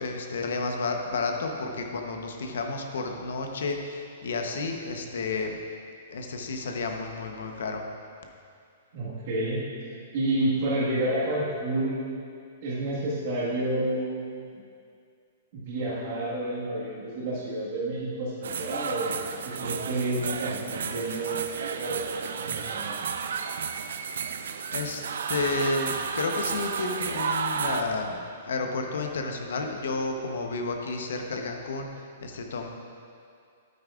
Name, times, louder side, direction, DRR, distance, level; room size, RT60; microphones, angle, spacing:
voice 1, 0.0-5.6 6.1-7.8 24.7-31.9 32.2-32.7, left 3 dB, 80° left, 4 dB, 0.9 m, -31 dB
voice 2, 8.9-9.6 10.1-12.1 12.6-14.5 15.5-23.0, right 1 dB, 50° right, -7 dB, 1.6 m, -30 dB
sound 1, 18.4-27.8, right 6 dB, 80° right, 0.4 m, -32 dB
9.3 x 8.6 x 2.4 m, 2.3 s
hypercardioid pair, 150°, 0 cm